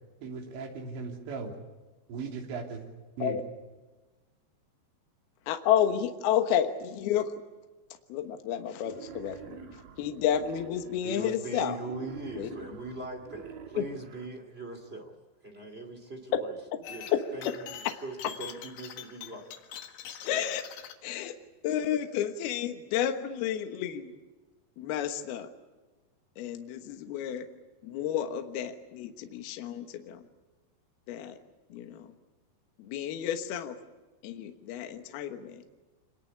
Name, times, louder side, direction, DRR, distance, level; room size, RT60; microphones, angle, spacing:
voice 1, 0.2-1.5 2.1-2.8 3.2-3.4, right 5 dB, 75° right, 2 dB, 5.5 m, -37 dB
voice 2, 5.5-7.3 8.1-11.8 12.3-12.6 13.8-13.9 16.3-16.4 17.1-17.2 20.2-20.6 21.0-21.4 21.6-24.2 24.8-25.5 26.4-27.5 27.8-30.2 31.1-31.4 31.7-32.1 32.8-33.8 34.2-35.6, left 10 dB, 70° left, 6 dB, 3.0 m, -31 dB
Wild animals, 8.8-11.3 11.8-14.3, right 8 dB, 55° right, 3.7 m, -47 dB
voice 3, 11.0-15.1 15.4-16.5 16.9-17.5 18.0-19.5, right 2 dB, 20° right, 2 dB, 1.8 m, -40 dB
sound 1, 16.8-20.9, left 9 dB, 85° left, 4.1 m, -44 dB
26.5 x 21.0 x 8.3 m, 1.2 s
omnidirectional pair, 5.2 m